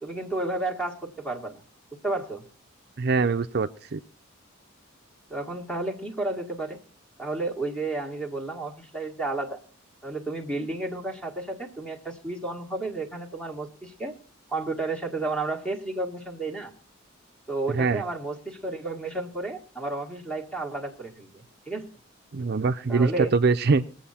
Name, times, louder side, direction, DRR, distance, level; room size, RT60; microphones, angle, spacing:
voice 1, 0.0-1.6 1.9-2.4 5.3-6.8 7.2-9.6 10.0-14.2 14.5-16.7 17.5-21.8 22.9-23.3, right 2 dB, 5° left, 3 dB, 1.8 m, -32 dB
voice 2, 3.0-4.0 17.7-18.0 22.3-23.9, right 4 dB, 50° right, 9 dB, 0.5 m, -23 dB
21.5 x 7.8 x 4.2 m, 0.42 s
head